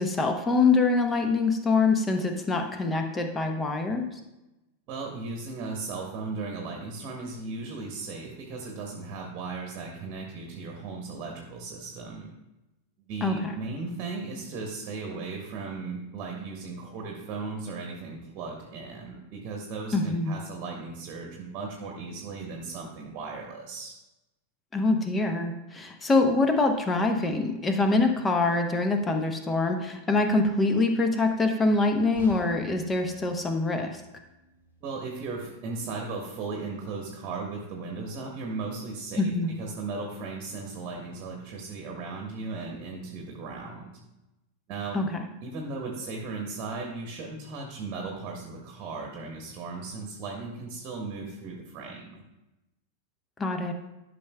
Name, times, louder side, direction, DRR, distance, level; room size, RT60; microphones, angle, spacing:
voice 1, 0.0-4.1 13.2-13.6 19.9-20.3 24.7-34.0 39.2-39.5 44.9-45.2 53.4-53.7, left 3 dB, 15° left, 5 dB, 0.8 m, -25 dB
voice 2, 4.9-12.3 13.0-23.9 34.8-44.0 44.7-45.0 45.4-52.2, right 4 dB, 35° right, 1 dB, 1.1 m, -36 dB
sound 1, 32.1-36.2 36.6-36.7 37.3-37.4, right 2 dB, 75° left, 1.8 m, -47 dB
12.0 x 5.5 x 2.3 m, 0.97 s
figure-of-eight pair, 90°, 0 cm